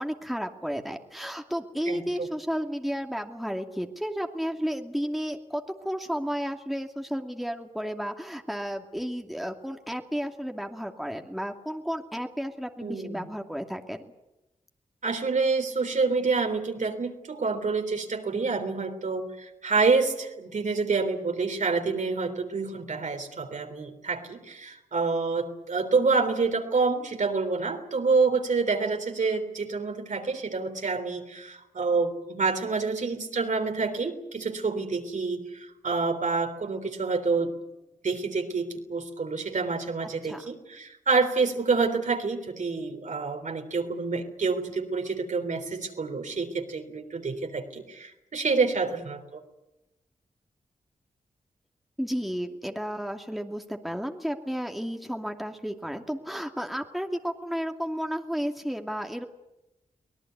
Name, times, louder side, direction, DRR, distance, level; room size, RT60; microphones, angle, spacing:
voice 1, 0.0-14.0 40.0-40.4 52.0-59.3, equal, ahead, 4 dB, 2.5 m, -32 dB
voice 2, 1.9-2.3 12.8-13.3 15.0-37.5 38.0-49.4, right 4 dB, 60° right, 5 dB, 3.7 m, -27 dB
24.5 x 18.0 x 9.5 m, 0.95 s
supercardioid pair, 40°, 14 cm